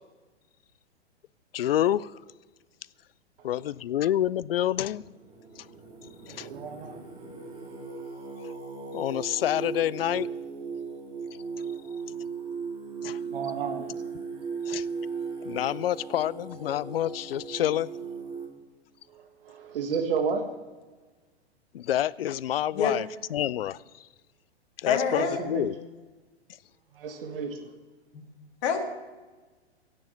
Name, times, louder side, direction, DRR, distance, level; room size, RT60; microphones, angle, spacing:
voice 1, 1.5-2.2 3.4-5.0 5.6-5.7 6.3-6.5 8.4-8.5 8.9-10.3 13.0-13.2 14.7-14.9 15.4-17.9 21.7-24.1 24.8-25.7, left 12 dB, 60° left, 0.5 m, -28 dB
Singing, 4.7-18.5, right 5 dB, 15° right, 2.2 m, -37 dB
voice 2, 6.3-7.0 13.2-13.9 19.1-20.5 25.1-25.7 26.9-27.7, right 5 dB, 55° right, 1.6 m, -32 dB
voice 3, 24.9-25.4 28.1-28.2 28.6-28.8, left 6 dB, 40° left, 2.0 m, -27 dB
16.0 x 7.5 x 7.6 m
figure-of-eight pair, 110°, 33 cm